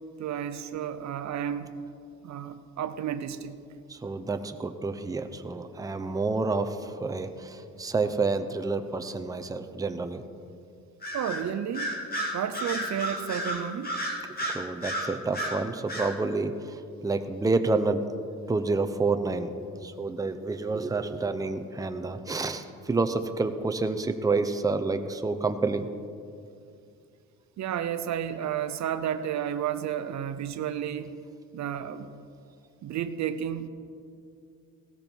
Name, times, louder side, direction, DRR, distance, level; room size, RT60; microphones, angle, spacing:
voice 1, 0.2-1.7 2.2-3.6 11.1-11.9 12.3-13.9 27.6-31.1 31.5-32.1 32.8-33.7, right 9 dB, 60° right, 11 dB, 0.8 m, -32 dB
voice 2, 3.9-10.2 14.4-18.0 18.5-25.9, right 3 dB, 10° right, 8 dB, 0.7 m, -29 dB
Bird vocalization bird call bird song, 11.0-11.4 11.7-15.6 15.9-16.1, equal, 30° left, 2.5 m, -32 dB
17.0 x 13.5 x 4.6 m, 2.4 s
cardioid pair, 105°, 32 cm